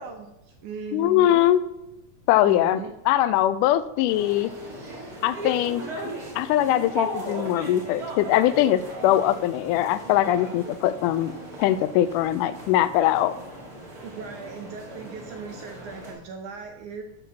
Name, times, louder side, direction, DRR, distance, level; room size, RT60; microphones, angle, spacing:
voice 1, 0.0-1.5 2.4-2.9 14.0-17.0, right 5 dB, 70° right, 4 dB, 2.1 m, -38 dB
voice 2, 0.9-1.6 2.3-4.5 5.2-5.8 6.4-11.3 11.6-13.3, left 13 dB, 80° left, 14 dB, 1.9 m, -21 dB
sound 1, 4.1-16.1, right 1 dB, 30° right, 2.4 m, -37 dB
11.0 x 4.1 x 6.9 m, 0.95 s
omnidirectional pair, 3.9 m